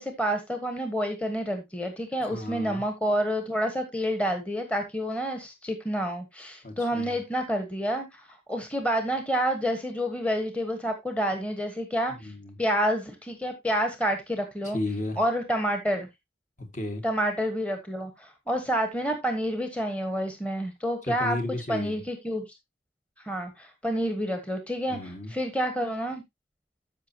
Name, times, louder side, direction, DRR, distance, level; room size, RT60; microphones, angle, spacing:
voice 1, 0.0-12.3 12.6-14.8 15.2-16.1 17.0-21.4 21.7-22.4 23.2-26.2, equal, 5° left, 1.2 m, -29 dB
voice 2, 2.2-2.8 6.6-7.2 12.2-12.6 14.7-15.2 16.6-17.0 21.1-22.0 24.9-25.3, left 2 dB, 40° left, 1.8 m, -34 dB
13.5 x 5.6 x 2.8 m
head